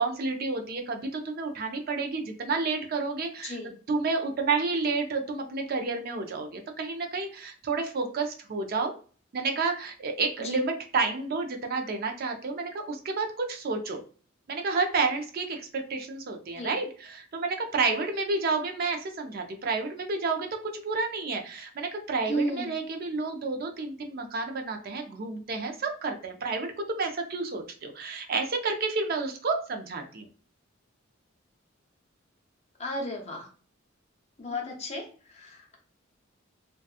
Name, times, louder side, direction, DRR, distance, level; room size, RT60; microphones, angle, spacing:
voice 1, 0.0-3.6 3.9-8.9 9.3-14.0 14.5-30.3, right 4 dB, 50° right, 4 dB, 0.4 m, -30 dB
voice 2, 22.3-22.8 32.8-33.5 34.4-35.8, equal, 35° left, 1 dB, 0.6 m, -33 dB
2.7 x 2.2 x 2.3 m, 0.40 s
head